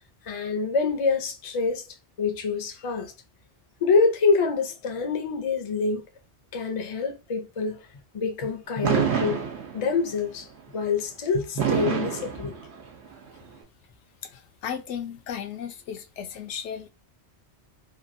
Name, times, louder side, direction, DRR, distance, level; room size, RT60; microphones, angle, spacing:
voice 1, 0.3-1.9 2.2-3.1 3.8-6.0 6.5-7.8 8.1-9.4 9.7-10.5 10.7-12.6, left 4 dB, 40° left, 0.5 m, -26 dB
Fireworks, 8.8-10.1 11.6-13.1, right 7 dB, 70° right, 1.0 m, -26 dB
voice 2, 14.2-16.9, left 8 dB, 85° left, 0.9 m, -35 dB
2.9 x 2.3 x 2.5 m
omnidirectional pair, 1.2 m